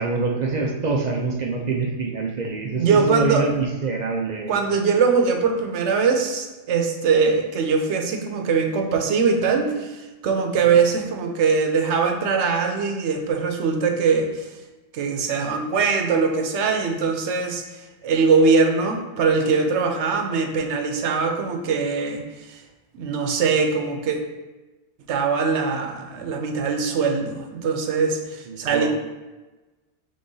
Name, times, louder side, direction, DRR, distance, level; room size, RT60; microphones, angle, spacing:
voice 1, 0.0-4.6 28.5-28.9, right 4 dB, 55° right, 0 dB, 0.5 m, -25 dB
voice 2, 2.8-3.5 4.5-14.5 14.9-22.6 22.9-24.2 25.1-28.9, right 5 dB, 85° right, 4 dB, 1.0 m, -22 dB
5.3 x 3.7 x 2.7 m, 1.2 s
omnidirectional pair, 1.1 m